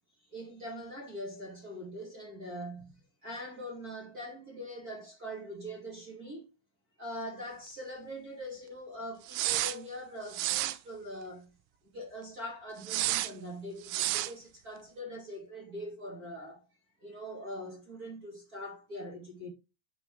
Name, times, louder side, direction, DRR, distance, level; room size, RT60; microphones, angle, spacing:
voice 1, 0.3-6.5 7.0-11.5 11.9-16.7 17.0-19.5, equal, 30° right, 2.0 m, -42 dB
sound 1, 9.3-9.8 10.3-10.8 12.8-13.3 13.9-14.3, right 16 dB, 90° right, 3.1 m, -30 dB
11.5 x 4.1 x 3.5 m
omnidirectional pair, 5.3 m